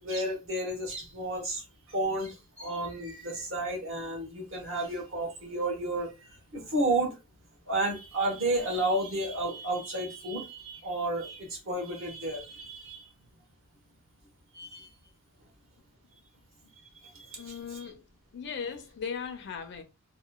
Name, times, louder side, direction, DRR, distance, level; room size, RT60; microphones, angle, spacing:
voice 1, 0.0-6.1 6.5-7.2 7.7-13.0 14.5-14.9 17.2-17.8, right 1 dB, 60° right, 1.0 m, -32 dB
voice 2, 17.4-18.0 18.3-19.8, left 6 dB, 55° left, 0.5 m, -38 dB
2.9 x 2.1 x 2.2 m
head